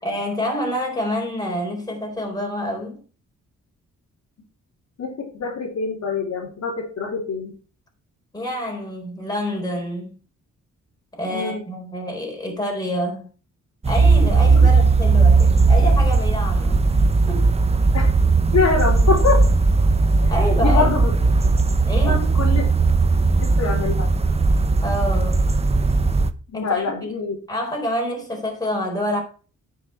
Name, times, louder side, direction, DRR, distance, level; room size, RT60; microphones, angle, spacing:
voice 1, 0.0-3.0 8.3-10.2 11.1-13.2 13.9-16.9 17.3-17.5 20.3-20.9 21.8-22.2 24.8-25.4 26.5-26.9 27.5-29.2, equal, 15° left, 4.3 m, -27 dB
voice 2, 5.0-7.5 11.3-11.6 17.9-18.1 18.5-19.4 20.2-21.1 22.1-22.7 23.4-24.1 26.5-27.4, left 4 dB, 65° left, 3.4 m, -24 dB
sound 1, 13.8-26.3, right 3 dB, 20° right, 0.7 m, -17 dB
10.5 x 6.4 x 4.5 m
cardioid pair, 120°, 30 cm